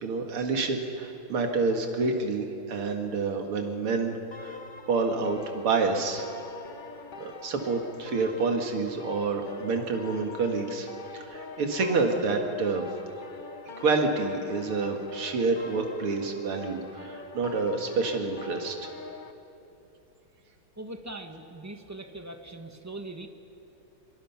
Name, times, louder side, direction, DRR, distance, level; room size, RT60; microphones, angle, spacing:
voice 1, 0.0-4.2 4.4-4.6 4.9-6.3 7.2-10.9 11.1-12.9 13.8-18.9, right 4 dB, 85° right, 3 dB, 2.8 m, -28 dB
sound 1, 4.3-19.3, left 4 dB, 65° left, 0.4 m, -44 dB
voice 2, 20.8-23.3, right 2 dB, 15° right, 5 dB, 0.7 m, -41 dB
25.0 x 24.5 x 5.8 m, 2.9 s
omnidirectional pair, 2.3 m